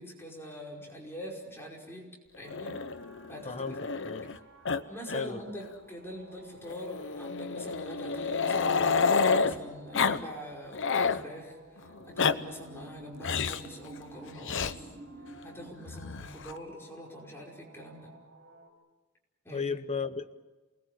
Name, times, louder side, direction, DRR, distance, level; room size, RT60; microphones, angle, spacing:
voice 1, 0.0-2.1 2.4-2.8 3.3-3.8 4.9-14.9 15.4-18.2 19.5-19.7, equal, 10° left, -1 dB, 5.3 m, -44 dB
sound 1, 2.4-18.7, right 1 dB, 60° right, 6.1 m, -52 dB
Growling, 2.5-4.4 4.6-4.8 5.1-5.2 5.6-5.7 6.7-9.5 9.9-10.2 10.5-11.2 11.9-12.3 13.2-13.7 14.4-14.7 15.9-16.5, left 5 dB, 60° left, 0.9 m, -29 dB
voice 2, 3.4-3.8 4.0-4.3 5.1-5.4 19.5-20.3, left 5 dB, 30° left, 10 dB, 1.0 m, -34 dB
28.5 x 20.5 x 7.7 m, 1.2 s
head